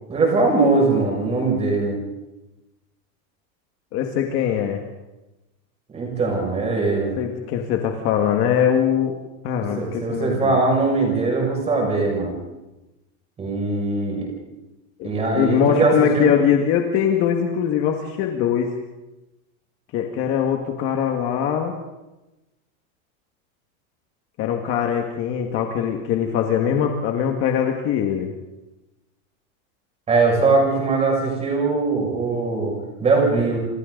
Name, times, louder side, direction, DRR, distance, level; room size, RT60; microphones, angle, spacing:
voice 1, 0.1-2.0 5.9-7.1 9.7-12.3 13.4-14.3 15.0-16.3 30.1-33.6, right 3 dB, 15° right, 0 dB, 6.3 m, -21 dB
voice 2, 3.9-4.8 7.2-9.2 9.4-10.6 15.0-18.7 19.9-21.7 24.4-28.3, left 8 dB, 30° left, 3 dB, 1.8 m, -22 dB
28.0 x 28.0 x 4.0 m, 1.0 s
supercardioid pair, 175°, 43 cm